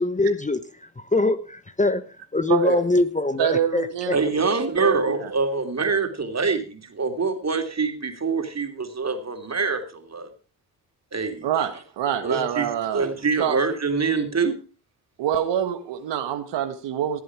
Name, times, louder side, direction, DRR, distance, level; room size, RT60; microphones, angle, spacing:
voice 1, 0.0-2.0 2.3-4.2, left 2 dB, 15° left, 12 dB, 1.0 m, -23 dB
voice 2, 2.5-2.8 3.4-4.2 4.8-5.3 11.4-13.1 13.4-13.6 15.2-17.2, right 8 dB, 75° right, 7 dB, 1.5 m, -25 dB
voice 3, 4.1-10.3 11.1-11.5 12.2-12.7 12.9-14.5, right 4 dB, 35° right, 5 dB, 3.2 m, -25 dB
17.5 x 7.8 x 4.8 m, 0.37 s
supercardioid pair, 55°, 43 cm